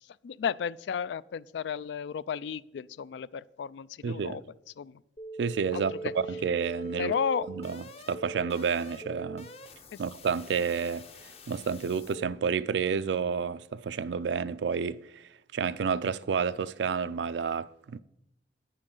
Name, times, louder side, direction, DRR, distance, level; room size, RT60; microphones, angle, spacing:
voice 1, 0.2-4.4 4.8-5.0 5.7-6.1 7.0-7.5 9.9-10.0, left 7 dB, 80° left, 0.3 m, -33 dB
voice 2, 4.0-4.4 5.4-7.1 7.5-9.5 10.0-11.1 11.5-18.0, right 6 dB, 85° right, 0.4 m, -30 dB
sound 1, 5.2-12.2, right 2 dB, 35° left, 0.7 m, -42 dB
10.0 x 9.7 x 3.8 m
head